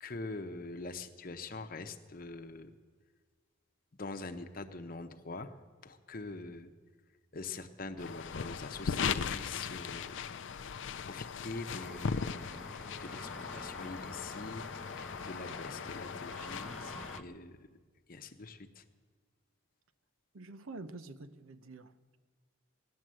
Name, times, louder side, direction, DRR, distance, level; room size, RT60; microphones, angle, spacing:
voice 1, 0.0-2.7 4.0-5.5 5.8-6.7 7.3-10.2 10.7-17.6 18.1-18.8, left 3 dB, 45° left, 7 dB, 0.8 m, -44 dB
sound 1, 8.0-17.2, left 6 dB, 65° left, 0.5 m, -38 dB
sound 2, 11.7-17.2, equal, ahead, 0.6 m, -48 dB
voice 2, 20.3-22.2, right 3 dB, 80° right, 11 dB, 0.7 m, -48 dB
17.0 x 10.5 x 7.6 m, 1.5 s
head